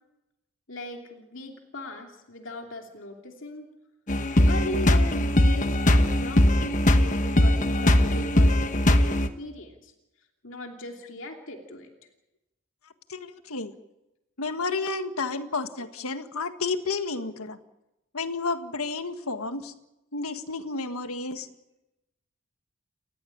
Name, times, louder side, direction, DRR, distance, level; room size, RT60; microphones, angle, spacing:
voice 1, 0.7-3.7 4.5-9.9 10.4-11.9 15.2-15.3, left 1 dB, 60° left, 2 dB, 2.9 m, -39 dB
sound 1, 4.1-9.3, left 1 dB, 35° left, 1.3 m, -20 dB
voice 2, 13.1-13.8 14.4-17.6 18.1-19.7 20.1-21.5, left 3 dB, 85° left, 8 dB, 1.8 m, -31 dB
29.5 x 15.0 x 8.7 m, 0.94 s
head